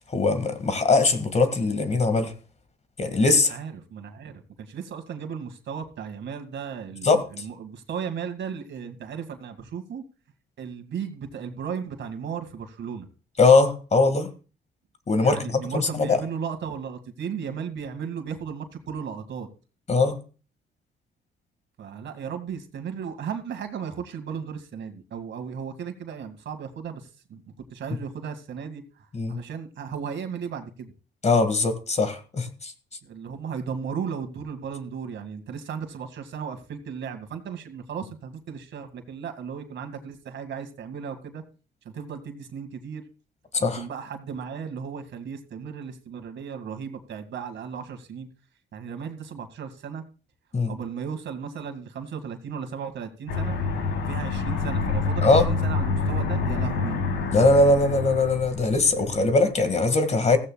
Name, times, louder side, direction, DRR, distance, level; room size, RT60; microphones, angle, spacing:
voice 1, 0.1-2.3 3.0-3.5 7.0-7.2 13.4-14.3 15.1-16.2 19.9-20.2 29.1-29.4 31.2-32.7 43.5-43.8 50.5-50.7 55.2-55.5 57.3-60.4, left 3 dB, 35° left, 2.0 m, -21 dB
voice 2, 3.5-10.0 10.6-13.1 15.2-19.5 21.8-27.4 27.7-28.8 29.3-30.9 33.0-41.4 41.8-43.0 43.6-48.3 48.7-50.0 50.7-53.6 54.1-57.0, right 7 dB, 65° right, 2.2 m, -35 dB
Aircraft, 53.3-59.4, left 4 dB, 85° left, 3.5 m, -27 dB
15.5 x 15.0 x 2.4 m
cardioid pair, 90°, 20 cm